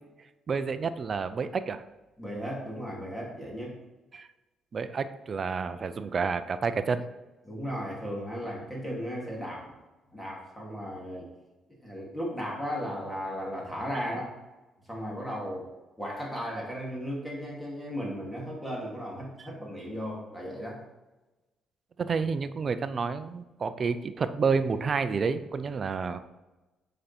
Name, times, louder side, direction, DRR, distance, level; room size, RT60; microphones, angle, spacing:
voice 1, 0.5-1.8 4.1-4.3 4.7-7.0 19.4-19.5 22.0-26.2, right 5 dB, 45° right, 12 dB, 0.5 m, -29 dB
voice 2, 2.2-3.7 7.4-9.7 10.1-11.3 11.8-14.3 14.9-15.6 16.0-20.8, equal, 10° left, -3 dB, 2.8 m, -35 dB
7.7 x 5.4 x 4.4 m, 1.1 s
cardioid pair, 90°, 0 cm